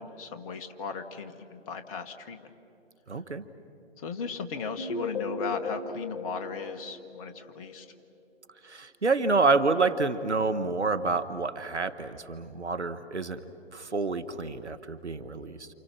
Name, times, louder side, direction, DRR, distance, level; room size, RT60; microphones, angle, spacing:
voice 1, 0.0-2.5 4.0-7.8, left 5 dB, 30° left, 6 dB, 1.6 m, -37 dB
voice 2, 3.1-3.5 8.6-13.4 13.7-15.7, right 3 dB, 85° right, 11 dB, 1.5 m, -28 dB
sound 1, 4.8-7.7, left 3 dB, 50° left, 2.9 m, -36 dB
29.0 x 28.0 x 6.1 m, 2.8 s
figure-of-eight pair, 135°, 34 cm